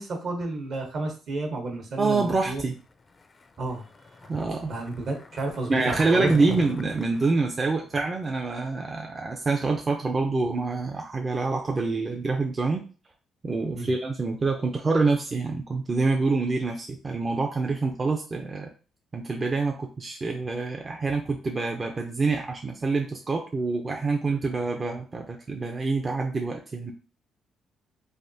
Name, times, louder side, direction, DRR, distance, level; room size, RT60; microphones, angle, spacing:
voice 1, 0.0-2.6 3.6-3.9 4.2-4.3 4.7-6.3 13.7-13.9, right 2 dB, 60° right, 2 dB, 0.9 m, -31 dB
voice 2, 2.0-2.8 4.3-4.7 5.7-12.8 13.4-18.7 19.1-26.9, right 3 dB, 30° right, 2 dB, 0.4 m, -26 dB
Skateboard, 3.1-8.5, left 3 dB, 30° left, 0.4 m, -41 dB
3.4 x 2.4 x 2.6 m, 0.37 s
cardioid pair, 90°, 0 cm